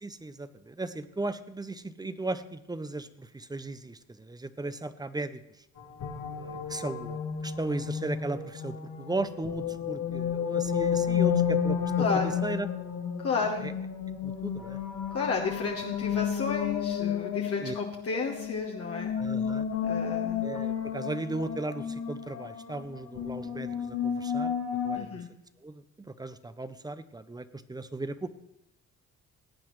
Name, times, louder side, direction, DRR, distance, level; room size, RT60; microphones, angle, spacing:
voice 1, 0.0-5.4 6.3-12.7 13.6-13.7 14.2-14.8 17.6-17.7 19.2-19.7 20.4-24.6 24.8-25.2 25.6-28.3, right 2 dB, 15° right, 13 dB, 0.6 m, -36 dB
sound 1, 5.8-25.0, left 8 dB, 70° left, 1.4 m, -31 dB
voice 2, 12.0-12.3 13.2-13.7 15.1-19.1 19.8-20.4 24.9-25.3, left 4 dB, 50° left, 0 dB, 1.1 m, -32 dB
18.0 x 8.5 x 3.1 m, 0.79 s
cardioid pair, 90°, 30 cm